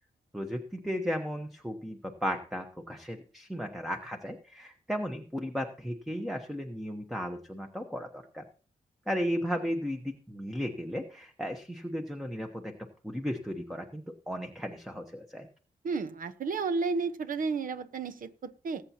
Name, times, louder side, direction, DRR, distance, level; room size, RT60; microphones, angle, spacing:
voice 1, 0.3-8.4 9.1-12.7 13.0-15.5, equal, ahead, 5 dB, 1.0 m, -35 dB
voice 2, 15.8-18.8, right 4 dB, 75° right, 10 dB, 1.0 m, -32 dB
20.5 x 8.2 x 2.9 m, 0.40 s
wide cardioid pair, 125°, 14 cm